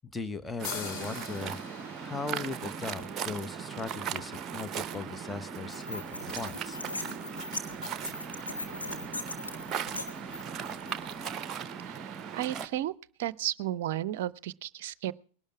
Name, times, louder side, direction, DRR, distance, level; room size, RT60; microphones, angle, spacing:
voice 1, 0.1-1.6 2.0-6.0 6.4-6.8, left 4 dB, 10° left, 11 dB, 1.0 m, -38 dB
sound 1, 0.6-4.2, left 7 dB, 45° left, 2.0 m, -44 dB
Waves surf, 0.6-12.7, right 7 dB, 30° right, 0.9 m, -38 dB
sound 2, 5.7-11.3, left 2 dB, 85° left, 1.9 m, -40 dB
voice 2, 11.9-12.9 13.2-15.1, right 13 dB, 50° right, 21 dB, 0.6 m, -33 dB
20.0 x 12.0 x 4.7 m, 0.43 s
figure-of-eight pair, 90°, 0 cm